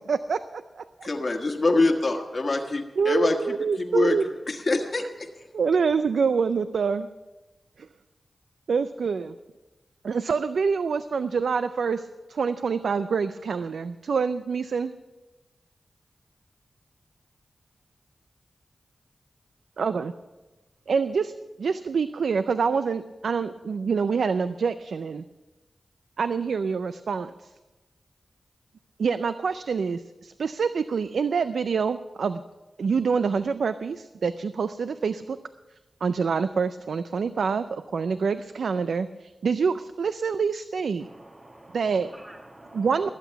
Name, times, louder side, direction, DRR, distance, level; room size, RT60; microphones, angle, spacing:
voice 1, 0.1-1.1 3.0-4.3 5.5-7.1 7.8-7.9 8.7-9.3 10.0-14.9 19.8-20.1 20.9-21.3 21.6-25.2 26.2-27.5 29.0-32.4 32.8-35.4 36.0-41.1 41.7-42.1 42.7-43.1, right 5 dB, 85° right, 0.4 m, -26 dB
voice 2, 1.0-4.2 4.5-5.3, left 2 dB, 50° left, 1.4 m, -25 dB
voice 3, 41.0-43.1, right 1 dB, 40° right, 1.4 m, -47 dB
20.5 x 8.2 x 5.7 m
cardioid pair, 50°, 0 cm